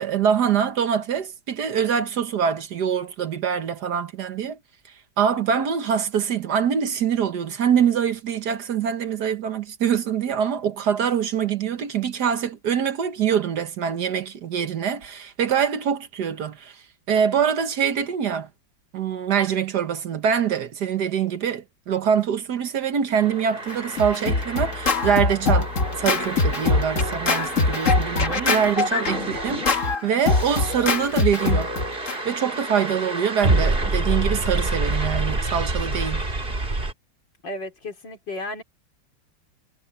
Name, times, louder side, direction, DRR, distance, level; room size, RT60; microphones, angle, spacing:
voice 1, 0.0-4.6 5.2-16.8 17.1-18.5 18.9-25.7 26.0-31.7 32.2-36.2, right 8 dB, 60° right, 1.6 m, -24 dB
sound 1, 23.2-36.9, right 2 dB, 30° right, 2.8 m, -28 dB
Scratching (performance technique), 23.7-32.2, left 3 dB, 45° left, 2.1 m, -23 dB
voice 2, 37.4-38.6, left 2 dB, 70° left, 4.4 m, -34 dB
omnidirectional pair, 2.0 m